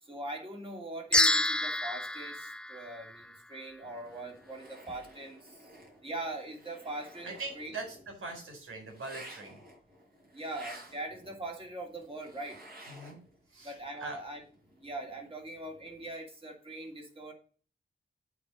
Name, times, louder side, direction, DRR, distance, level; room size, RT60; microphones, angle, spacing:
voice 1, 0.0-5.7 6.0-7.7 10.3-12.6 13.6-14.4 14.8-17.3, right 2 dB, 25° right, 1 dB, 2.9 m, -41 dB
sound 1, 1.1-3.6, left 2 dB, 5° left, 0.4 m, -29 dB
sound 2, 3.8-13.4 13.7-16.1, right 1 dB, 50° right, 4.6 m, -53 dB
voice 2, 7.2-9.6 12.9-13.2 13.5-14.2, right 3 dB, 85° right, 3 dB, 3.9 m, -42 dB
8.5 x 4.7 x 6.4 m, 0.40 s
wide cardioid pair, 100°, 21 cm